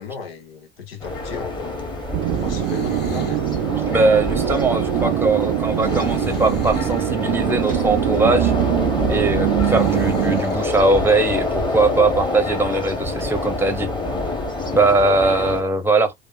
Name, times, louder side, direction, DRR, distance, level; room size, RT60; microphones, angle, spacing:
voice 1, 0.0-1.8 2.3-3.4, left 5 dB, 75° left, 1.0 m, -35 dB
sound 1, 1.0-15.6, left 2 dB, 15° left, 1.2 m, -26 dB
sound 2, 2.1-10.4, right 15 dB, 45° right, 0.4 m, -23 dB
sound 3, 2.2-3.5 5.8-7.1 9.6-10.7, left 4 dB, 35° left, 1.2 m, -37 dB
voice 2, 3.9-8.5 9.1-13.9 14.7-16.1, right 3 dB, 5° right, 0.8 m, -20 dB
3.4 x 2.5 x 2.4 m
figure-of-eight pair, 70°, 30 cm